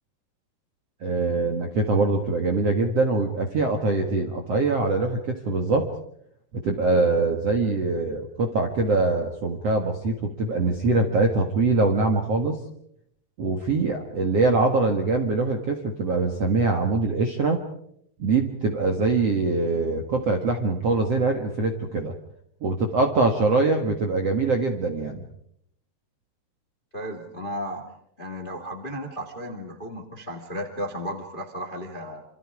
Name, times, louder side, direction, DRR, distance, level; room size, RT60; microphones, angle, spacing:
voice 1, 1.0-5.9 6.5-12.6 13.4-17.6 18.2-22.1 22.6-25.2, right 3 dB, 55° right, 4 dB, 1.9 m, -23 dB
voice 2, 26.9-27.8 28.2-32.2, equal, 20° left, 5 dB, 1.4 m, -34 dB
27.5 x 27.0 x 4.9 m, 0.70 s
omnidirectional pair, 5.1 m